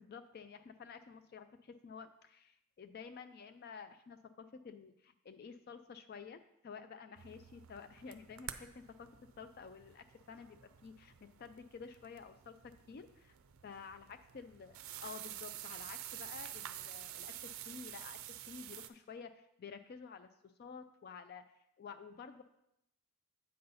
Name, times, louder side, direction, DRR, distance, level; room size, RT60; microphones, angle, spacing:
voice 1, 0.0-9.1 9.4-13.3 13.6-14.8 15.0-18.2 18.5-21.5 21.8-22.4, left 5 dB, 45° left, 10 dB, 0.3 m, -51 dB
sound 1, 7.2-18.9, right 12 dB, 70° right, 0.4 m, -49 dB
7.7 x 4.0 x 5.5 m, 0.80 s
head